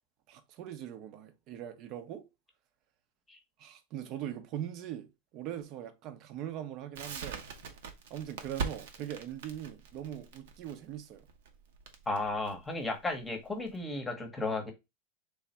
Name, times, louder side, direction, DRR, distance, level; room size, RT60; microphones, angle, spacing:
voice 1, 0.3-2.3 3.6-7.5 8.1-11.3, right 11 dB, 45° right, 0.8 m, -41 dB
Crackle, 6.9-13.8, right 5 dB, 80° right, 1.0 m, -42 dB
voice 2, 12.1-14.7, left 2 dB, 10° left, 1.0 m, -34 dB
3.5 x 3.1 x 4.3 m
supercardioid pair, 145°, 0 cm